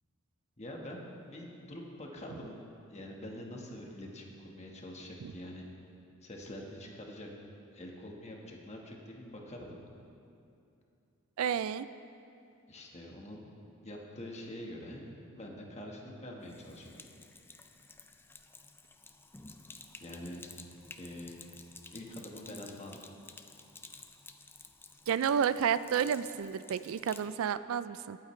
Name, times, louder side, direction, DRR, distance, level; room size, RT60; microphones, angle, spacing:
voice 1, 0.6-2.6 2.9-5.7 6.2-7.3 7.7-9.8 12.7-13.5 13.8-17.0 20.0-20.5 20.9-21.4 21.9-23.0, left 1 dB, 30° left, 0 dB, 1.4 m, -45 dB
voice 2, 11.4-11.9 25.1-28.2, right 8 dB, 70° right, 15 dB, 0.3 m, -31 dB
Sink (filling or washing), 16.4-27.3, left 3 dB, 10° left, 0.4 m, -53 dB
20.5 x 9.0 x 3.2 m, 2.6 s
head